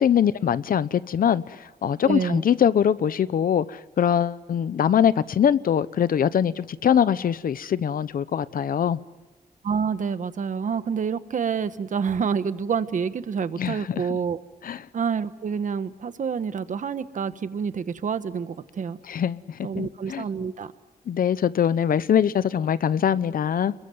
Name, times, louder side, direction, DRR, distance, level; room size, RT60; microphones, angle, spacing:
voice 1, 0.0-9.0 13.6-14.1 14.6-14.8 19.1-20.2 21.1-23.7, left 8 dB, 70° left, 0.9 m, -23 dB
voice 2, 2.0-2.4 9.6-14.4 14.9-19.0 19.6-20.7, right 6 dB, 60° right, 1.3 m, -28 dB
30.0 x 22.5 x 7.8 m
wide cardioid pair, 120°, 15 cm